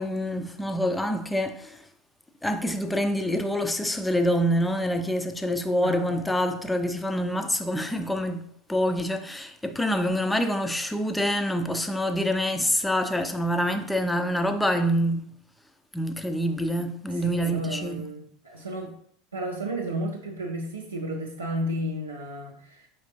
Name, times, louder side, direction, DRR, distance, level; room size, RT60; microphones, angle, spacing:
voice 1, 0.0-1.8 2.4-15.3 15.9-18.1, equal, 5° left, 0.4 m, -26 dB
voice 2, 5.8-6.2 17.1-18.9 19.3-22.9, right 1 dB, 85° right, 0.5 m, -33 dB
4.9 x 3.3 x 2.9 m
figure-of-eight pair, 80°, 0 cm